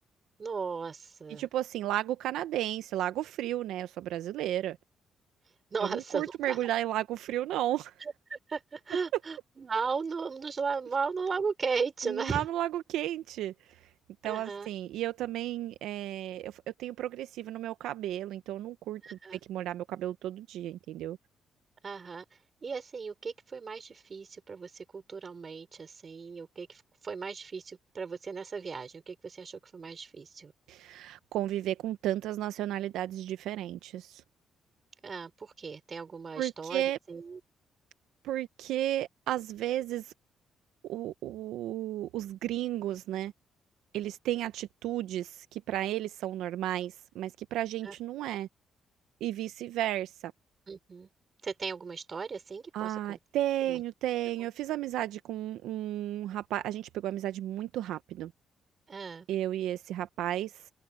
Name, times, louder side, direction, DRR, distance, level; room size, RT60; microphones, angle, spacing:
voice 1, 0.4-1.5 5.7-6.6 8.0-12.5 14.2-14.7 19.0-19.4 21.8-22.2 22.6-30.5 35.0-37.4 47.8-48.0 50.7-51.1 51.4-53.2 53.7-53.8 54.4-54.5 58.9-59.3, right 5 dB, 40° right, 5.2 m, -36 dB
voice 2, 1.4-4.8 5.8-7.9 12.0-13.8 14.2-19.2 19.5-21.2 30.7-34.2 36.4-37.0 38.2-40.1 40.8-43.3 43.9-48.5 49.2-50.3 52.7-58.3 59.3-60.7, right 13 dB, 85° right, 0.7 m, -33 dB
open air
cardioid pair, 90°, 0 cm